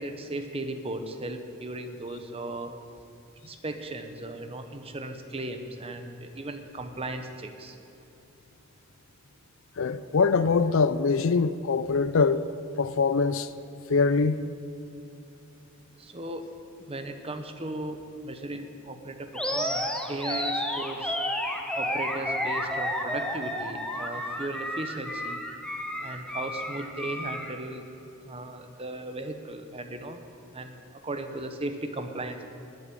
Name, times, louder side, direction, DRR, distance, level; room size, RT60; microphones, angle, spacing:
voice 1, 0.0-2.7 3.4-7.8 16.0-16.4 16.9-21.1 21.7-25.4 26.0-27.8 28.2-30.2 30.5-32.4, right 2 dB, 25° right, 0.9 m, -36 dB
voice 2, 9.8-12.4 12.8-13.5 13.9-14.5, left 4 dB, 60° left, 0.5 m, -23 dB
Animal, 19.3-27.5, left 1 dB, 5° left, 1.0 m, -31 dB
12.0 x 8.5 x 10.0 m
head